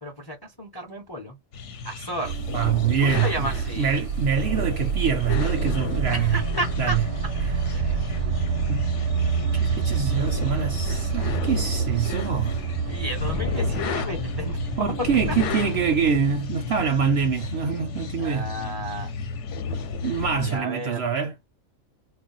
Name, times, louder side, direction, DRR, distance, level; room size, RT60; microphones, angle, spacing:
voice 1, 0.0-1.3 1.8-2.3 3.1-3.9 6.1-7.0 7.7-8.0 12.9-14.6 18.2-19.1 20.0-21.0, equal, 25° left, 0.5 m, -33 dB
sound 1, 1.5-20.6, left 5 dB, 65° left, 0.9 m, -32 dB
sound 2, 2.2-16.4, right 7 dB, 85° right, 1.0 m, -28 dB
voice 2, 2.5-6.4 6.8-7.0 7.4-7.6 8.7-8.8 9.5-12.6 14.8-18.5 20.0-21.4, right 7 dB, 65° right, 0.7 m, -25 dB
2.4 x 2.1 x 3.8 m
omnidirectional pair, 1.4 m